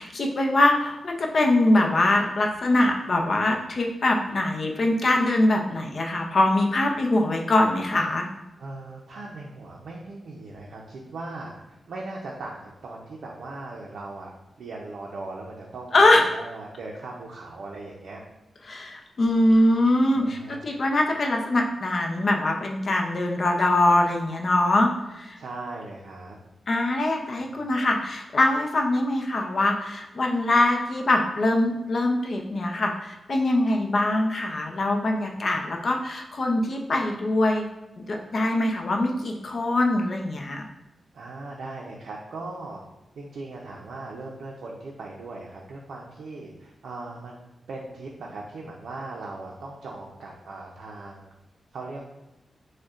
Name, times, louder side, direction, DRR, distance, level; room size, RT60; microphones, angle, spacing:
voice 1, 0.0-8.3 15.9-16.2 18.7-25.4 26.7-37.6 38.0-40.6, left 1 dB, 45° left, 2 dB, 0.5 m, -23 dB
voice 2, 8.6-11.5 11.9-14.3 14.6-18.2 20.2-20.6 25.4-26.4 27.4-27.5 35.4-35.5 41.1-42.8 43.2-47.4 47.7-51.3 51.7-52.0, right 2 dB, 85° right, -2 dB, 0.5 m, -39 dB
6.3 x 2.1 x 2.4 m, 0.95 s
wide cardioid pair, 135°, 0 cm